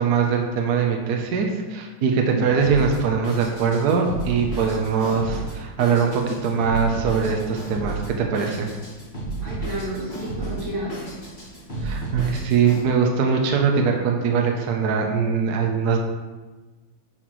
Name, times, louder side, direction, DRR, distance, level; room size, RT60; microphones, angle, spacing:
voice 1, 0.0-8.7 11.8-16.0, right 6 dB, 65° right, 2 dB, 1.2 m, -22 dB
Drum kit, 2.6-12.8, right 2 dB, 35° left, 1.8 m, -33 dB
voice 2, 9.4-11.0, equal, 85° right, -8 dB, 3.3 m, -31 dB
8.0 x 6.1 x 3.1 m, 1.2 s
omnidirectional pair, 2.1 m